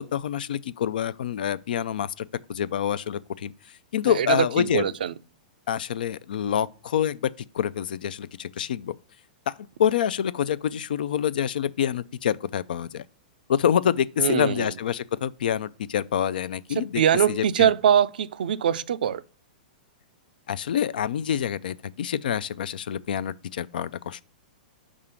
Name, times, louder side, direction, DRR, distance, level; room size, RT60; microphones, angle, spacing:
voice 1, 0.0-3.5 3.9-4.8 5.7-9.0 9.5-9.6 9.8-13.0 13.5-17.0 17.3-17.7 20.5-24.2, left 9 dB, 70° left, 0.3 m, -26 dB
voice 2, 4.2-5.1 14.2-14.7 16.8-19.2, right 9 dB, 75° right, 0.4 m, -23 dB
4.9 x 3.6 x 5.5 m
hypercardioid pair, 120°, 5 cm